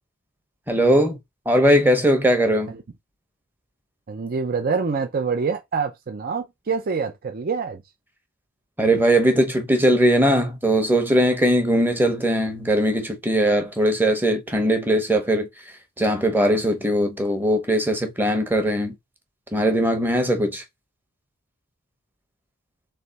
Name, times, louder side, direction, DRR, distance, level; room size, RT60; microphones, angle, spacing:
voice 1, 0.7-1.2 1.5-2.7 8.8-15.5 16.0-18.9 19.5-20.6, right 1 dB, 10° right, 0.9 m, -20 dB
voice 2, 4.1-7.8, right 5 dB, 40° right, 0.5 m, -26 dB
3.4 x 3.3 x 4.0 m
head